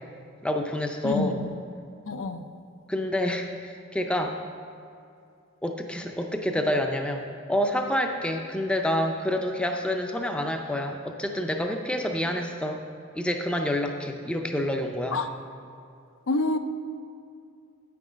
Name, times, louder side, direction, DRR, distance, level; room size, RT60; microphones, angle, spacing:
voice 1, 0.4-1.4 2.9-4.4 5.6-7.2 7.5-12.8 13.1-15.2, left 1 dB, 5° left, 4 dB, 0.5 m, -28 dB
voice 2, 1.0-1.5 2.1-2.5 15.1-15.3 16.3-16.6, left 2 dB, 70° left, 8 dB, 0.5 m, -27 dB
9.2 x 6.0 x 5.1 m, 2.5 s
head